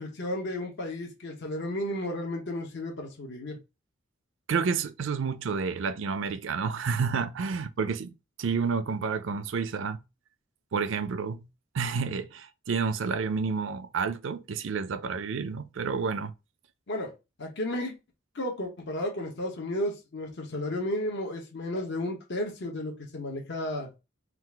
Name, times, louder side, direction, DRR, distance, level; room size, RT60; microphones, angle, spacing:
voice 1, 0.0-3.6 16.9-17.1 17.4-17.9 18.3-24.0, left 1 dB, 55° left, 0.9 m, -33 dB
voice 2, 4.5-10.0 10.7-11.4 11.7-16.3, right 5 dB, 60° right, 0.4 m, -30 dB
3.8 x 2.4 x 4.5 m
head